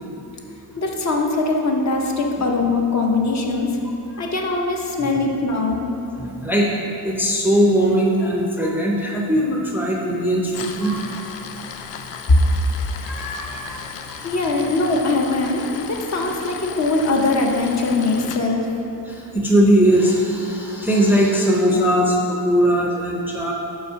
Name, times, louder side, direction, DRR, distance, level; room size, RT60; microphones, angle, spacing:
voice 1, 0.8-3.8 4.2-5.9 12.3-12.4 14.2-18.7, left 2 dB, 40° left, 1 dB, 0.7 m, -21 dB
voice 2, 6.2-6.7 7.0-11.3 13.0-13.8 19.1-23.5, equal, 5° right, -2 dB, 0.5 m, -19 dB
Tools, 10.4-18.4, left 7 dB, 85° left, 0.6 m, -35 dB
5.6 x 4.2 x 5.6 m, 2.7 s
cardioid pair, 135°, 43 cm